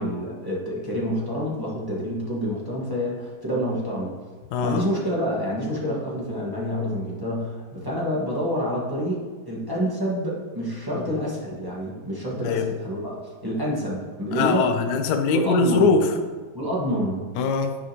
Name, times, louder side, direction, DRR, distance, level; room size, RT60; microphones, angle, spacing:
voice 1, 0.0-4.1 4.6-14.7 15.3-15.9 16.5-17.3, equal, 15° right, -6 dB, 1.1 m, -28 dB
voice 2, 4.5-4.8 10.9-11.0 12.4-12.7 14.3-16.1 17.4-17.8, left 4 dB, 75° left, 5 dB, 1.0 m, -21 dB
10.0 x 4.9 x 2.8 m, 1.4 s
omnidirectional pair, 2.2 m